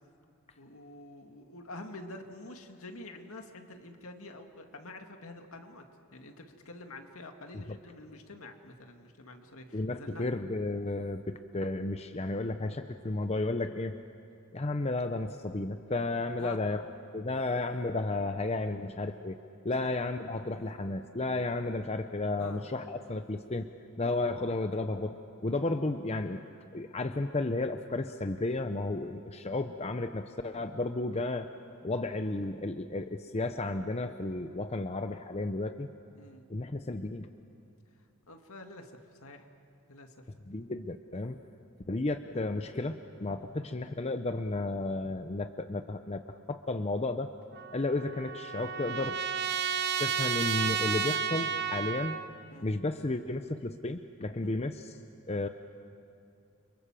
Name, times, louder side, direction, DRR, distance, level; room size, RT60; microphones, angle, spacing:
voice 1, 0.6-5.8 6.1-10.3 16.4-16.6 19.8-19.9 22.4-22.6 24.0-24.2 36.1-36.5 38.3-38.9 39.2-39.5 39.9-40.1 40.5-40.7 43.5-43.6 52.5-52.7 54.4-54.5, left 2 dB, 70° left, 4 dB, 2.3 m, -47 dB
voice 2, 9.7-14.0 14.5-16.8 17.1-19.4 19.6-23.7 24.0-25.2 25.4-26.4 26.7-31.5 31.8-35.9 36.5-37.3 40.5-41.4 41.9-47.3 47.7-49.2 50.0-52.2 52.6-55.0 55.3-55.5, left 2 dB, 30° left, 8 dB, 0.7 m, -33 dB
Trumpet, 47.5-52.3, right 7 dB, 50° right, 1.1 m, -32 dB
30.0 x 25.5 x 7.5 m, 2.6 s
head